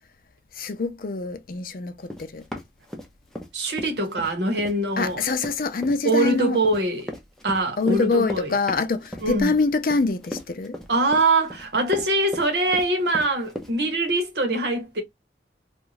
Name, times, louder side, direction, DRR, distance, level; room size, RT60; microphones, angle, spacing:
voice 1, 0.5-2.4 5.0-6.6 7.8-10.8, left 3 dB, 55° left, 0.5 m, -25 dB
Run, 2.1-3.5 3.8-13.7, equal, 5° left, 0.5 m, -36 dB
voice 2, 3.5-5.2 6.0-7.1 7.4-8.5 9.2-9.5 10.9-15.0, right 2 dB, 75° right, 1.0 m, -23 dB
2.5 x 2.3 x 3.0 m
head